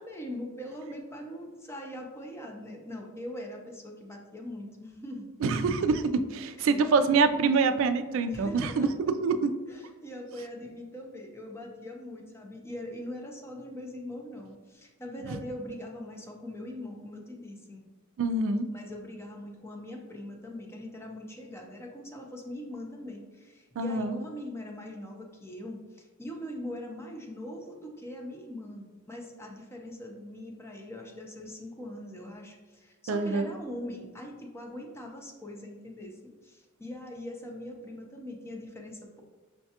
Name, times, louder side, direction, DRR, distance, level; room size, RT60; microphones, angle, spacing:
voice 1, 0.0-5.3 6.6-6.8 8.3-9.1 9.7-17.8 18.7-39.2, left 1 dB, 10° left, 1 dB, 0.5 m, -42 dB
voice 2, 5.4-6.0 6.3-8.9 9.2-9.5 15.3-15.4 18.2-18.7 23.8-24.2 33.1-33.5, right 4 dB, 65° right, 9 dB, 0.3 m, -25 dB
5.6 x 2.2 x 2.8 m, 1.3 s
head